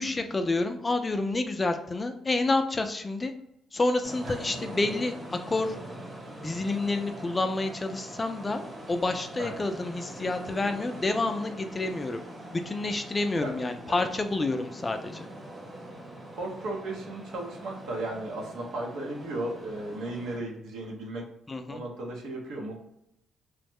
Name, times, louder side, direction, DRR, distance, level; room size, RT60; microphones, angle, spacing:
voice 1, 0.0-3.3 3.7-5.8 6.4-8.6 8.9-12.2 12.5-15.3 21.5-21.8, left 2 dB, 25° left, 7 dB, 0.3 m, -29 dB
sound 1, 4.0-20.4, right 1 dB, 35° right, 1.0 m, -43 dB
voice 2, 16.3-21.2 21.7-22.8, right 2 dB, 85° right, -1 dB, 0.8 m, -35 dB
3.1 x 2.1 x 3.4 m, 0.79 s
cardioid pair, 90°, 0 cm